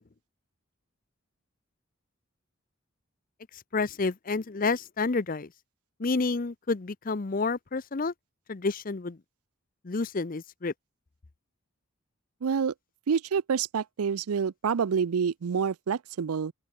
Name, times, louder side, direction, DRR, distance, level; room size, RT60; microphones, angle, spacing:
voice 1, 3.7-5.5 6.0-8.1 8.5-9.2 9.8-10.7, left 3 dB, 40° left, 0.6 m, -29 dB
voice 2, 12.4-12.7 13.1-16.5, right 6 dB, 90° right, 0.5 m, -27 dB
open air
head